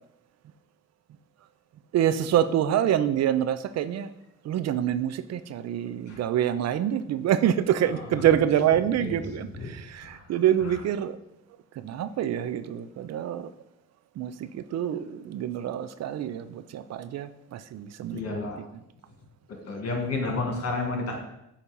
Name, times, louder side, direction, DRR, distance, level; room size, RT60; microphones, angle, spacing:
voice 1, 1.9-4.1 4.4-11.2 11.8-13.5 14.2-18.2, right 10 dB, 60° right, 0.4 m, -26 dB
voice 2, 18.1-18.6 19.7-21.2, left 3 dB, 55° left, 2.1 m, -30 dB
8.3 x 2.9 x 5.2 m
cardioid pair, 90°, 30 cm